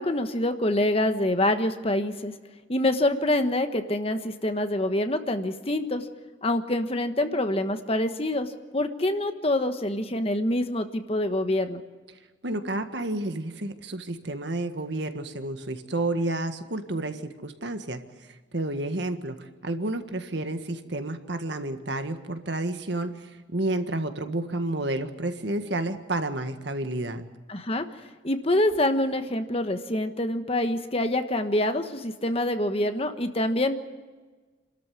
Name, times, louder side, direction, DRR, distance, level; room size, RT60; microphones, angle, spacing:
voice 1, 0.0-2.3 2.7-6.0 6.4-11.8 27.5-27.8 28.2-33.8, left 1 dB, 30° left, 8 dB, 1.3 m, -26 dB
voice 2, 12.4-27.3, right 2 dB, 65° right, 7 dB, 1.7 m, -30 dB
27.5 x 13.5 x 9.5 m, 1.3 s
head